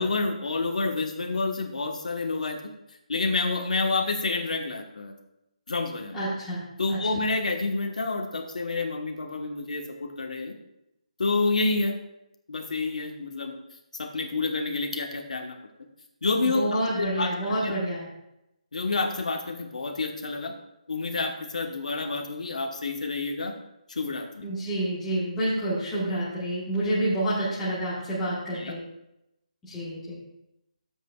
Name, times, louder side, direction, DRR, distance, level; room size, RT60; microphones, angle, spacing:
voice 1, 0.0-2.6 3.1-5.1 5.7-6.2 6.8-10.5 11.2-12.0 12.5-13.6 14.0-15.5 16.2-16.6 17.0-17.7 18.7-20.5 20.9-23.5 23.9-24.5 28.5-28.7, left 3 dB, 75° left, 3 dB, 1.2 m, -28 dB
voice 2, 6.1-6.6 6.9-7.0 16.4-18.1 24.4-28.8 29.6-30.2, right 1 dB, 5° left, -12 dB, 1.3 m, -28 dB
12.5 x 7.8 x 2.4 m, 0.86 s
hypercardioid pair, 175°, 4 cm